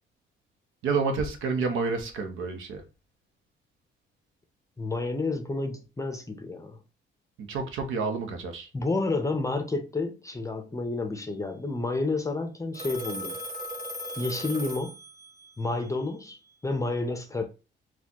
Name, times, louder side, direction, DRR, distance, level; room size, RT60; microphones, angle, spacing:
voice 1, 0.8-2.8 7.4-8.7, right 4 dB, 85° right, 0.8 m, -29 dB
voice 2, 4.8-6.8 8.7-13.4 14.2-15.0 15.6-17.4, left 3 dB, 15° left, 0.6 m, -30 dB
Telephone, 12.7-15.5, equal, 45° right, 1.5 m, -37 dB
4.1 x 2.3 x 2.8 m
cardioid pair, 90°, 20 cm